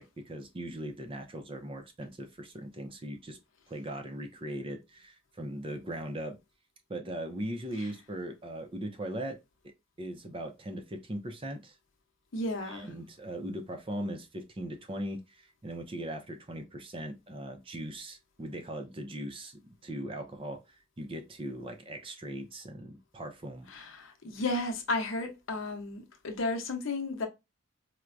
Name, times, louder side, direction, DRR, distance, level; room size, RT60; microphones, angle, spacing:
voice 1, 0.0-3.4 3.7-6.4 6.9-9.4 10.0-11.7 12.6-23.7, right 1 dB, 25° right, 0.5 m, -39 dB
voice 2, 12.3-12.9 23.7-27.3, left 2 dB, 70° left, 0.8 m, -33 dB
4.5 x 2.1 x 2.5 m
head